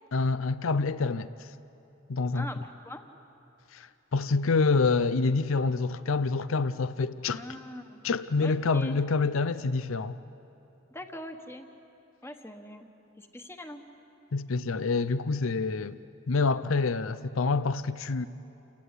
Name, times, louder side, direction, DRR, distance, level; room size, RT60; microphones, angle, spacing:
voice 1, 0.1-1.5 2.1-2.5 3.7-7.4 8.0-10.2 14.3-16.0 16.3-18.3, left 4 dB, 80° left, 0.6 m, -27 dB
voice 2, 2.3-3.1 7.3-8.0 8.4-9.0 10.9-11.7 12.2-12.9 13.2-13.8, left 1 dB, 15° left, 1.3 m, -42 dB
29.0 x 16.0 x 9.7 m
head